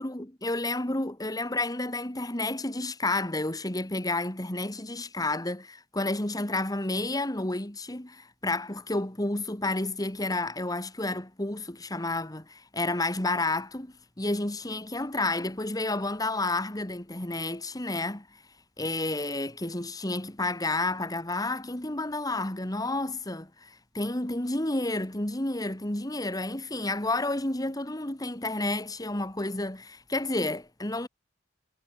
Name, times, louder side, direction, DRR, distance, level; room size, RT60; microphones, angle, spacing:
voice 1, 0.0-18.3 18.8-31.1, left 2 dB, 20° left, 2.0 m, -30 dB
head